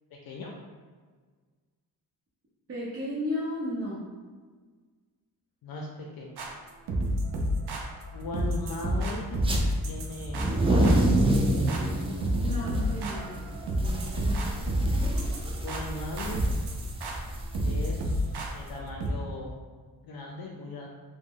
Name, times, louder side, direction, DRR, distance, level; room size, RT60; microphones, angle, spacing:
voice 1, 0.1-0.5 5.6-6.5 8.1-9.4 9.8-11.0 15.6-16.5 17.6-19.6 20.0-20.9, left 2 dB, 65° left, -1 dB, 0.5 m, -39 dB
voice 2, 2.7-4.0 12.4-13.5, left 1 dB, 35° right, -10 dB, 0.7 m, -33 dB
sound 1, 6.4-19.1, equal, 75° right, 0.6 m, -30 dB
sound 2, 9.3-9.6 10.2-18.7, right 1 dB, 15° right, 0.3 m, -28 dB
3.0 x 2.1 x 3.7 m, 1.5 s
wide cardioid pair, 110°, 39 cm